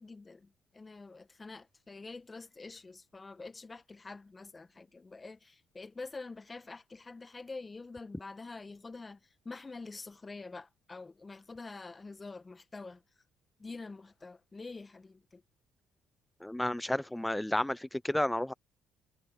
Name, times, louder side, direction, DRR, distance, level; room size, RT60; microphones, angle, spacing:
voice 1, 0.0-13.0 13.6-15.4, left 3 dB, 25° left, 1.5 m, -46 dB
voice 2, 16.4-18.5, left 1 dB, 5° left, 0.6 m, -31 dB
hypercardioid pair, 60°, 0 cm